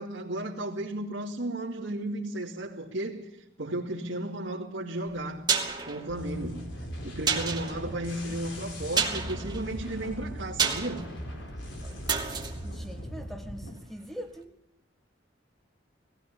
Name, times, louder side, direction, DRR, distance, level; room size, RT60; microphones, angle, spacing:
voice 1, 0.0-5.5 5.9-6.7 7.0-11.1, right 1 dB, 80° right, 2.5 m, -34 dB
sound 1, 5.1-13.9 14.2-14.3, right 6 dB, 20° right, 2.7 m, -32 dB
sound 2, 6.1-13.7, equal, 90° left, 4.6 m, -39 dB
voice 2, 7.8-8.4 12.6-14.6, equal, ahead, 1.7 m, -43 dB
20.0 x 16.5 x 8.6 m
head